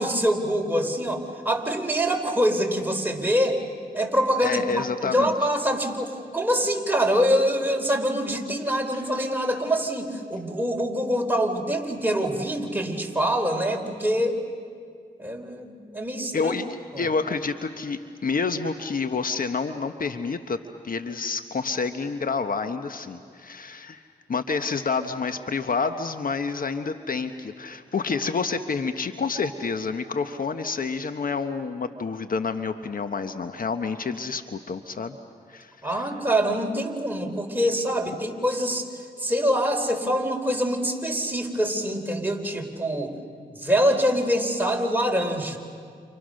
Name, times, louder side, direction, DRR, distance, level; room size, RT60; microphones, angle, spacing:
voice 1, 0.0-3.6 3.9-14.4 15.2-16.5 16.9-17.1 35.8-43.1 43.5-45.6, equal, 10° right, 2 dB, 4.3 m, -25 dB
voice 2, 4.4-5.3 16.3-20.6 20.8-24.0 24.3-35.2 35.5-36.0, left 4 dB, 60° left, 9 dB, 1.3 m, -28 dB
29.5 x 29.5 x 6.6 m, 2.1 s
cardioid pair, 50°, 17 cm